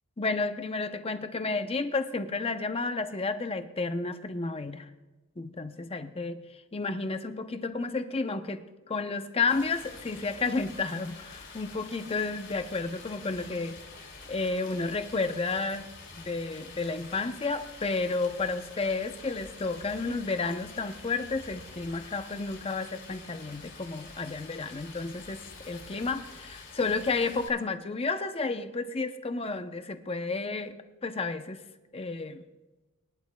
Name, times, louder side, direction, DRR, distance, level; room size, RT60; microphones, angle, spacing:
voice 1, 0.2-4.9 5.4-6.4 6.7-13.8 14.3-15.9 16.2-31.6 31.9-32.4, left 3 dB, 25° left, 9 dB, 0.6 m, -31 dB
Stream, 9.5-27.5, left 4 dB, 50° left, 2.5 m, -47 dB
23.0 x 11.5 x 2.2 m, 1.2 s
head